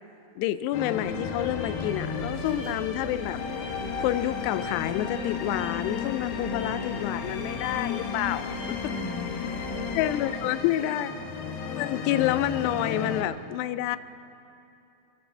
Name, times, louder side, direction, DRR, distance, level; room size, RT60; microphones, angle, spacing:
voice 1, 0.4-3.4 4.0-8.6 10.0-11.1 11.8-14.0, left 13 dB, 85° left, 14 dB, 2.7 m, -28 dB
Blues Strings in B Flat Major, 0.7-13.2, left 6 dB, 70° left, 2.8 m, -34 dB
sound 1, 1.1-10.1, equal, 15° left, 3.7 m, -40 dB
voice 2, 6.4-7.6 8.8-11.6, right 1 dB, 70° right, 0 dB, 3.4 m, -43 dB
27.5 x 15.0 x 3.4 m, 2.9 s
omnidirectional pair, 4.8 m